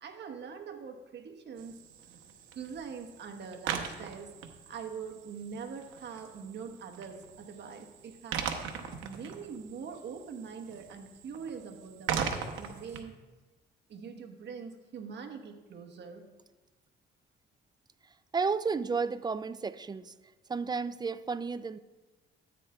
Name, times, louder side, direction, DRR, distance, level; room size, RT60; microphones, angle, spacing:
voice 1, 0.0-1.8 2.5-4.3 4.7-8.6 9.0-13.2 13.9-16.3, right 6 dB, 60° right, 4 dB, 1.2 m, -43 dB
sound 1, 1.6-13.0, right 7 dB, 85° right, 0.9 m, -40 dB
voice 2, 18.3-20.1 20.5-21.8, right 5 dB, 20° right, 15 dB, 0.4 m, -32 dB
13.5 x 8.7 x 2.3 m, 1.2 s
cardioid pair, 90°, 20 cm